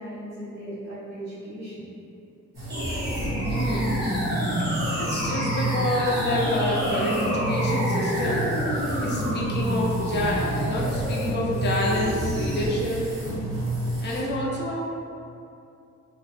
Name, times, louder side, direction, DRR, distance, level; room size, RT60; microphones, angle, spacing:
voice 1, 0.0-1.9, right 1 dB, 60° right, -13 dB, 1.0 m, -38 dB
sound 1, 2.5-14.2, right 1 dB, 85° right, 1.2 m, -31 dB
sound 2, 2.7-12.7, equal, 35° right, 0.6 m, -28 dB
voice 2, 3.5-4.1 5.0-8.5 9.0-13.0 14.0-14.8, left 1 dB, 35° left, -3 dB, 0.4 m, -28 dB
2.4 x 2.4 x 2.4 m, 2.5 s
wide cardioid pair, 165°, 31 cm